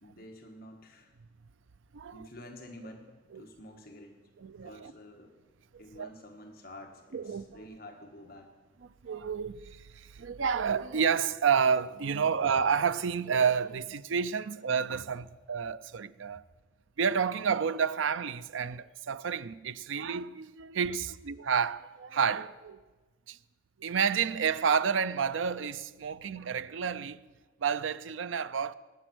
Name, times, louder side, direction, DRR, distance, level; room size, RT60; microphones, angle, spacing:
voice 1, 0.0-1.1 2.1-4.2 4.6-5.3 5.8-8.5 12.2-12.3, left 1 dB, 50° left, 1.4 m, -49 dB
voice 2, 1.9-2.3 3.3-3.5 4.4-4.9 5.7-6.1 7.1-7.6 9.0-16.4 17.0-22.8 23.3-23.4 23.8-27.2 27.6-28.7, right 6 dB, 80° right, 0.5 m, -30 dB
19.5 x 9.0 x 6.1 m
head